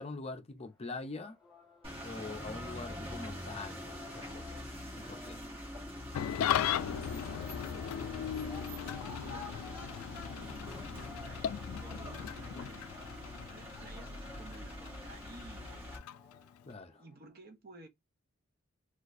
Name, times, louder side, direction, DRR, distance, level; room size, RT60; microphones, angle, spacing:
voice 1, 0.0-1.4 2.0-4.7 4.9-5.4 16.7-17.0, left 3 dB, 30° left, 0.5 m, -44 dB
sound 1, 0.6-17.3, left 6 dB, ahead, 2.1 m, -58 dB
sound 2, 1.8-16.0, left 1 dB, 25° right, 1.5 m, -44 dB
Engine starting / Idling, 6.1-16.7, left 9 dB, 85° left, 0.3 m, -38 dB
voice 2, 6.7-9.7 10.2-15.9 16.9-17.9, right 2 dB, 50° right, 0.8 m, -55 dB
4.2 x 2.4 x 2.5 m
head